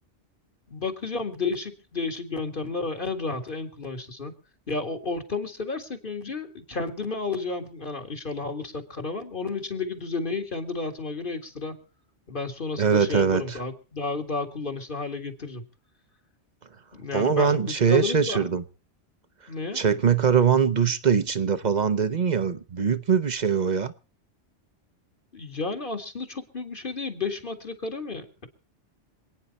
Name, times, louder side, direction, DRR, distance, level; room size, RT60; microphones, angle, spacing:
voice 1, 0.7-4.3 4.7-11.7 12.3-15.6 16.9-18.4 19.5-19.8 25.3-28.5, left 3 dB, 45° left, 2.2 m, -32 dB
voice 2, 12.8-13.6 17.1-18.6 19.7-23.9, right 6 dB, 40° right, 1.0 m, -22 dB
27.0 x 9.5 x 4.2 m
omnidirectional pair, 1.2 m